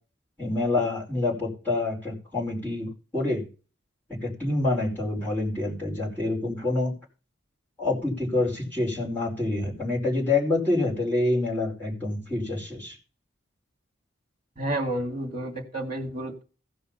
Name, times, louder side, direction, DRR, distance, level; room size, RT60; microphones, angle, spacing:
voice 1, 0.4-3.4 4.1-6.9 7.8-13.0, left 2 dB, 10° left, -5 dB, 4.8 m, -27 dB
voice 2, 14.6-16.4, right 1 dB, 25° right, 2 dB, 2.8 m, -30 dB
16.5 x 5.6 x 5.6 m, 0.36 s
head